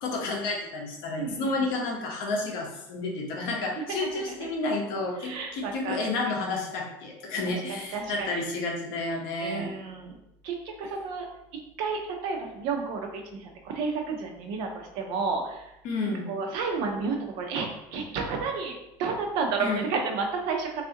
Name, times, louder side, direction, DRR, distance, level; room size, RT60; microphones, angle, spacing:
voice 1, 0.0-9.7 15.8-16.3 19.6-19.8, left 2 dB, 50° left, 0 dB, 0.7 m, -31 dB
voice 2, 1.2-1.5 3.8-4.5 5.2-6.4 7.5-8.3 9.4-10.2 10.4-11.3 11.5-15.7 16.0-20.8, right 4 dB, 55° right, 3 dB, 0.5 m, -32 dB
3.4 x 2.4 x 2.7 m, 0.84 s
cardioid pair, 175°, 9 cm